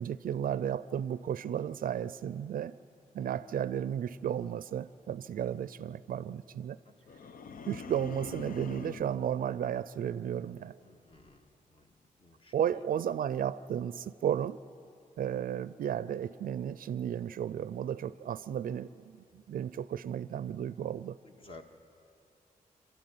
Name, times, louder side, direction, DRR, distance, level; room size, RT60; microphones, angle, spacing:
voice 1, 0.0-2.8 3.1-6.8 7.7-10.8 12.5-14.6 15.2-21.2, right 9 dB, 75° right, 16 dB, 0.4 m, -34 dB
sound 1, 7.1-9.2, left 5 dB, 75° left, 0.7 m, -44 dB
voice 2, 10.8-11.5 11.7-11.9 12.2-12.5 21.2-21.6, left 2 dB, 40° left, 4 dB, 1.8 m, -54 dB
27.5 x 13.0 x 9.4 m, 2.7 s
wide cardioid pair, 115°, 15 cm